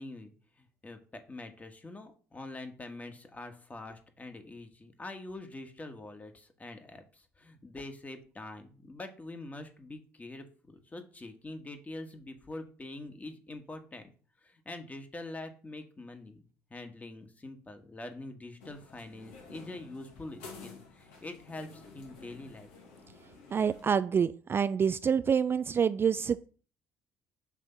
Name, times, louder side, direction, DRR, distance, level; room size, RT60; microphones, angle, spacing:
voice 1, 0.0-14.1 14.4-22.7, left 2 dB, 25° left, 6 dB, 1.4 m, -45 dB
sound 1, 18.6-24.0, left 4 dB, 85° left, 1.4 m, -51 dB
voice 2, 23.5-26.5, right 7 dB, 35° right, 13 dB, 0.3 m, -27 dB
6.0 x 3.4 x 5.6 m, 0.40 s
hypercardioid pair, 60°, 7 cm